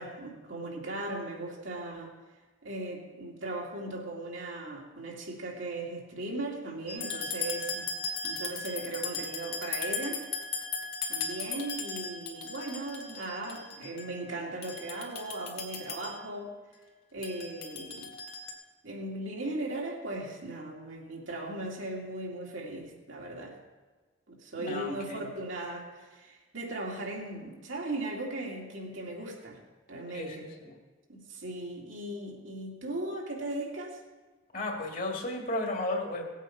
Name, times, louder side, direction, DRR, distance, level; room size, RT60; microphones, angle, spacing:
voice 1, 0.0-2.1 2.6-8.0 8.2-10.3 11.1-16.5 17.1-18.1 18.8-23.6 24.3-29.6 29.9-30.5 31.1-34.0, right 2 dB, 75° right, -2 dB, 2.4 m, -38 dB
sound 1, 6.9-14.2 14.6-16.2 17.2-18.5, left 4 dB, 90° left, 2.2 m, -37 dB
voice 2, 24.6-25.3 30.1-30.7 34.5-36.3, left 1 dB, 45° left, 1 dB, 1.9 m, -34 dB
18.0 x 8.3 x 4.4 m, 1.3 s
head